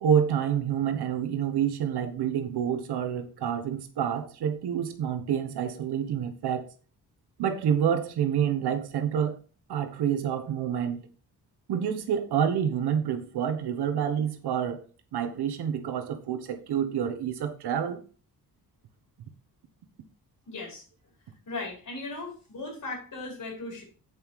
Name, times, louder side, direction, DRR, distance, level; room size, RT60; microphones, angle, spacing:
voice 1, 0.0-6.7 7.4-9.4 9.7-11.1 11.7-14.8 15.1-18.0, right 8 dB, 90° right, 1.3 m, -28 dB
voice 2, 20.5-20.8 21.5-23.8, left 3 dB, 55° left, 5.2 m, -37 dB
8.1 x 5.4 x 4.8 m
cardioid pair, 80°, 38 cm